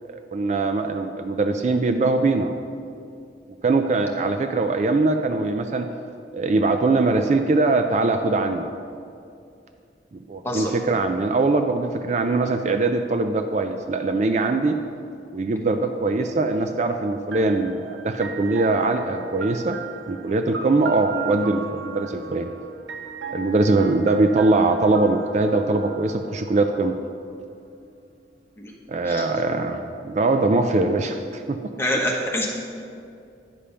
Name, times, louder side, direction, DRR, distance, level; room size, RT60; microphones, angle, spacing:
voice 1, 0.0-2.5 3.6-5.9 6.3-8.6 10.1-14.8 15.3-19.8 20.1-22.5 23.3-27.0 28.9-31.6, right 3 dB, 40° right, 7 dB, 0.3 m, -22 dB
sound 1, 17.3-27.1, right 4 dB, 85° right, 0.6 m, -36 dB
voice 2, 31.8-32.5, left 1 dB, 15° left, -2 dB, 1.1 m, -25 dB
9.8 x 5.1 x 5.6 m, 2.5 s
head